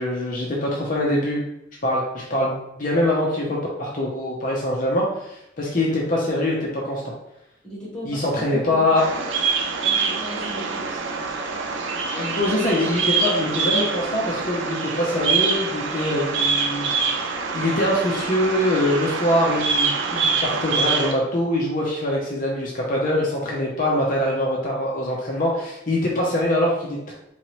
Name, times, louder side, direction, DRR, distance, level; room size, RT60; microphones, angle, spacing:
voice 1, 0.0-1.4 1.8-7.0 8.1-9.0 12.1-16.9 17.2-17.3 17.5-27.1, left 1 dB, 45° left, -3 dB, 0.6 m, -23 dB
voice 2, 7.6-9.2 9.8-11.3 11.8-12.3, equal, 5° left, -8 dB, 1.1 m, -38 dB
Bird vocalization bird call bird song, 9.0-21.1, right 4 dB, 70° right, 0.5 m, -25 dB
3.8 x 3.0 x 3.0 m, 0.83 s
head